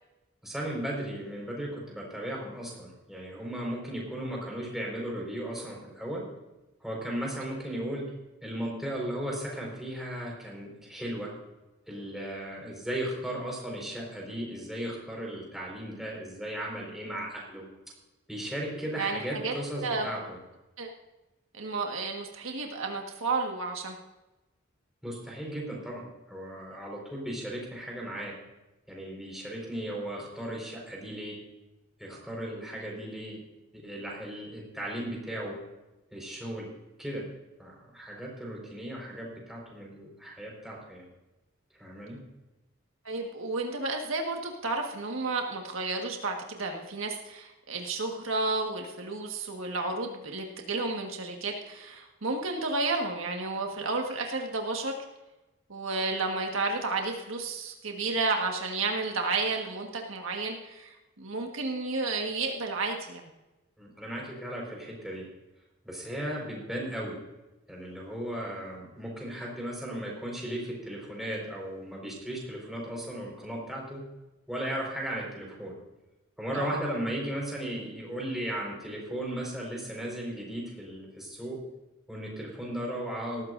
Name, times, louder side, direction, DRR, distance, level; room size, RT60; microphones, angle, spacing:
voice 1, 0.4-6.3 6.8-8.0 8.4-11.3 11.9-17.6 18.3-20.4 25.0-28.4 28.9-31.4 32.0-33.4 33.7-35.6 36.1-36.7 37.0-37.3 37.6-41.1 41.8-42.2 63.8-65.3 65.8-67.2 67.7-74.0 74.5-75.8 76.4-81.6 82.1-83.4, right 1 dB, ahead, -3 dB, 4.7 m, -36 dB
voice 2, 19.0-19.5 19.8-20.1 20.8-20.9 21.5-23.9 43.0-54.9 55.7-63.3 76.5-76.8, right 3 dB, 75° right, 2 dB, 1.6 m, -32 dB
18.5 x 14.5 x 2.6 m, 1.0 s
head